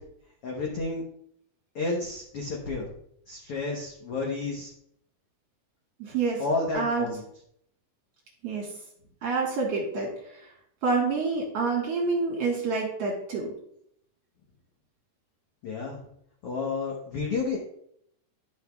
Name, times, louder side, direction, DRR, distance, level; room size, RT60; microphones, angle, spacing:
voice 1, 0.4-1.0 1.7-2.9 3.3-4.7 6.4-7.2 15.6-16.0 16.4-17.6, left 3 dB, 75° left, -1 dB, 1.3 m, -31 dB
voice 2, 6.0-6.4 6.7-7.1 8.4-8.7 9.2-10.5 10.8-13.5, right 4 dB, 55° right, -2 dB, 2.1 m, -28 dB
12.0 x 5.7 x 2.3 m, 0.70 s
omnidirectional pair, 4.1 m